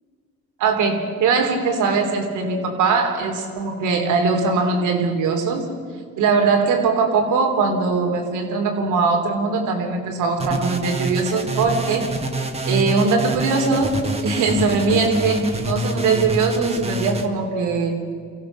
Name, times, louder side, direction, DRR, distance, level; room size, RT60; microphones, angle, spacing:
voice 1, 0.6-5.7 6.2-12.1 12.6-14.0 14.2-18.0, right 4 dB, 90° right, 3 dB, 3.1 m, -21 dB
sound 1, 10.4-17.3, right 2 dB, 20° right, 1.9 m, -26 dB
24.5 x 16.0 x 7.2 m, 2.1 s
cardioid pair, 90°, 30 cm